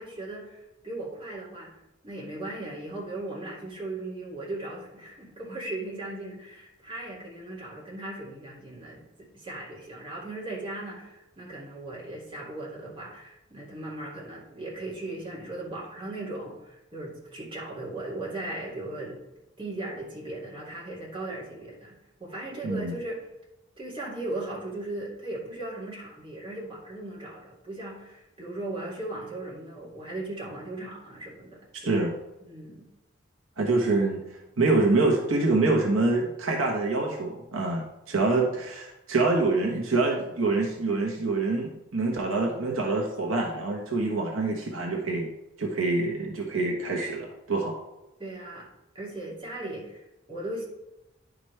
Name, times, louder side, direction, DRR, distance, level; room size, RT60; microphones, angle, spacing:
voice 1, 0.0-1.7 2.0-19.2 19.6-21.9 22.2-23.3 23.8-31.9 32.4-32.9 48.2-48.7 48.9-50.7, right 2 dB, 25° right, -6 dB, 2.4 m, -37 dB
voice 2, 22.6-22.9 31.7-32.1 33.6-34.2 34.6-45.3 45.6-47.8, right 3 dB, 75° right, 0 dB, 1.2 m, -26 dB
10.5 x 5.1 x 3.3 m, 0.93 s
head